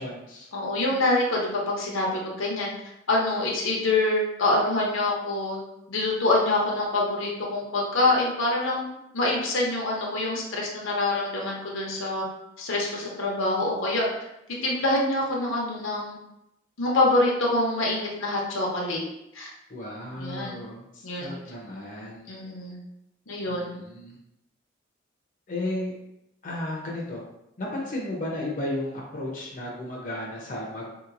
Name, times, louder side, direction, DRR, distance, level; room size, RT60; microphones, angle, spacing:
voice 1, 0.0-0.5 19.7-22.3 23.5-24.2 25.5-25.9 26.4-27.2 27.6-31.0, left 1 dB, 40° left, -4 dB, 0.7 m, -34 dB
voice 2, 0.5-2.7 3.1-5.6 5.9-8.8 9.1-12.2 12.6-14.1 14.6-16.2 16.8-19.0 19.3-19.5 20.1-20.6 21.0-21.3 22.3-22.8 23.3-23.7, left 2 dB, 80° left, -2 dB, 0.9 m, -25 dB
3.7 x 2.9 x 2.5 m, 0.85 s
head